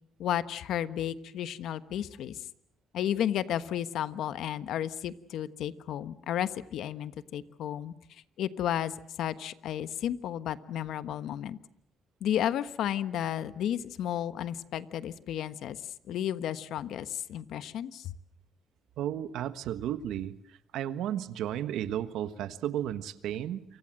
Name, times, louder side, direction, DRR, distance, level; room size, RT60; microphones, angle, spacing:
voice 1, 0.2-2.4 2.9-7.9 8.4-11.6 12.2-15.8 16.1-18.1, left 10 dB, 80° left, 13 dB, 1.3 m, -33 dB
voice 2, 19.0-20.3 20.7-23.6, right 11 dB, 85° right, 12 dB, 1.5 m, -33 dB
28.5 x 25.0 x 7.7 m, 0.72 s
cardioid pair, 90°, 0 cm